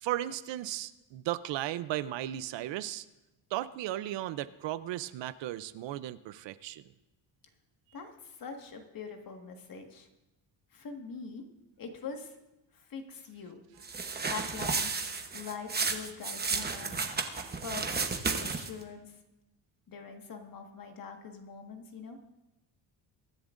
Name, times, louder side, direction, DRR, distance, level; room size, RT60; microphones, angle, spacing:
voice 1, 0.0-3.0 3.5-6.8, right 14 dB, 75° right, 14 dB, 0.7 m, -35 dB
voice 2, 7.9-10.1 10.7-11.4 11.8-12.4 12.7-13.6 14.2-14.9 15.3-17.0 17.5-19.2 19.9-22.2, left 5 dB, 50° left, 4 dB, 1.8 m, -43 dB
sound 1, 13.8-18.8, right 4 dB, 20° right, 1.0 m, -33 dB
23.0 x 10.5 x 2.6 m, 0.98 s
cardioid pair, 125°, 45 cm